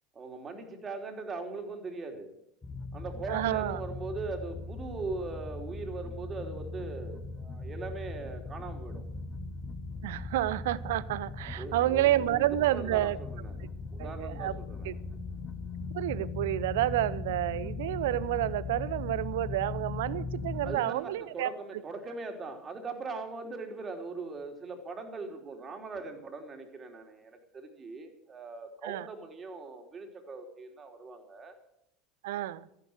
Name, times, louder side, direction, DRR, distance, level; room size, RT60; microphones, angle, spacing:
voice 1, 0.1-2.3 2.9-9.0 11.6-13.7 13.9-15.0 20.6-31.6, right 3 dB, 25° right, 3.3 m, -40 dB
sound 1, 2.6-20.8, left 3 dB, 20° left, 1.8 m, -39 dB
voice 2, 3.3-3.8 10.0-13.2 14.0-14.5 14.8-14.9 15.9-21.5 28.8-29.1 32.2-32.7, right 14 dB, 65° right, 0.6 m, -29 dB
14.0 x 10.5 x 8.0 m
figure-of-eight pair, 75°, 0 cm